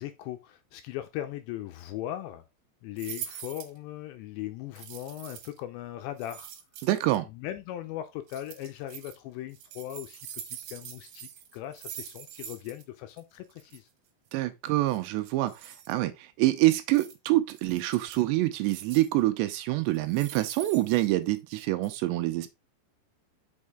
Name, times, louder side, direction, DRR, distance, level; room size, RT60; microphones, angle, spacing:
voice 1, 0.0-2.4 2.8-6.5 7.3-13.9, left 13 dB, 80° left, 2.6 m, -39 dB
sound 1, 3.0-3.8 4.8-5.6 6.2-7.2 8.3-9.2 9.5-12.8 13.1-13.2 13.5-13.8 14.9-15.9 16.9-17.1 17.5-18.2 18.6-19.2 19.9-21.5 21.8-21.9, right 10 dB, 70° right, 2.7 m, -44 dB
voice 2, 6.8-7.3 14.3-22.5, right 17 dB, 85° right, 2.6 m, -26 dB
6.5 x 5.3 x 3.6 m
omnidirectional pair, 5.6 m